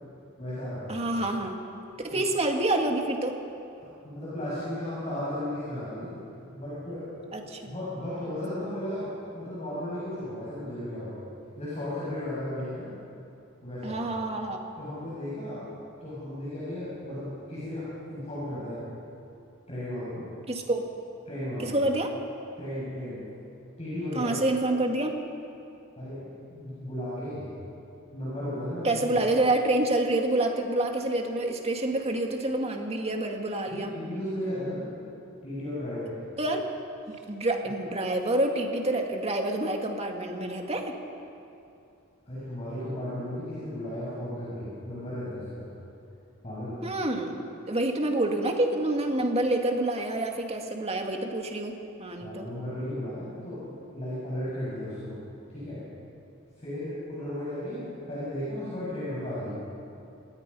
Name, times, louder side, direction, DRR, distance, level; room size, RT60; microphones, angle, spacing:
voice 1, 0.4-1.1 2.1-2.2 3.8-6.1 6.5-7.1 7.7-11.2 11.6-12.9 13.6-14.0 14.8-15.7 16.0-18.8 19.7-20.3 21.3-21.8 22.6-23.2 23.8-24.3 26.0-27.5 28.1-29.0 33.7-34.9 35.4-36.2 37.1-37.2 42.2-45.7 46.4-46.8 52.2-55.8 56.6-59.6, left 1 dB, 30° left, -10 dB, 7.0 m, -35 dB
voice 2, 0.9-1.6 2.0-3.3 7.3-7.7 13.8-14.6 20.5-20.8 21.6-22.1 24.1-25.2 28.8-33.9 36.4-36.7 37.3-40.9 46.8-52.5, right 1 dB, 30° right, 3 dB, 2.2 m, -27 dB
28.0 x 19.5 x 5.6 m, 2.6 s
head